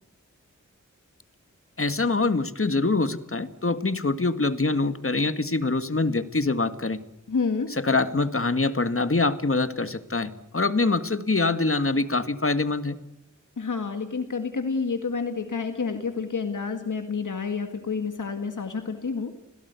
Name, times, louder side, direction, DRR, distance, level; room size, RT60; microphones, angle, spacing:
voice 1, 1.8-7.0 7.8-13.0, left 3 dB, 45° left, 11 dB, 1.8 m, -24 dB
voice 2, 7.3-7.7 13.6-19.3, left 5 dB, 85° left, 6 dB, 2.0 m, -29 dB
26.0 x 17.5 x 8.2 m, 0.90 s
wide cardioid pair, 45°, 30 cm